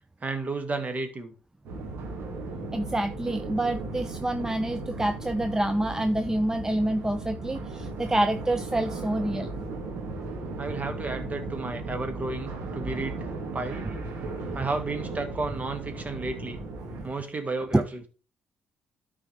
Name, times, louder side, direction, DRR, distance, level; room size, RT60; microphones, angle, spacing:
voice 1, 0.2-1.3 10.6-13.2 13.5-13.9 14.5-16.6 17.0-17.8, right 3 dB, 35° right, 2.1 m, -32 dB
sound 1, 1.6-17.0, right 3 dB, 65° right, 2.2 m, -36 dB
voice 2, 2.7-9.5 14.5-14.6 17.7-17.9, right 1 dB, 15° right, 0.7 m, -27 dB
12.5 x 4.8 x 3.4 m
hypercardioid pair, 50°, 4 cm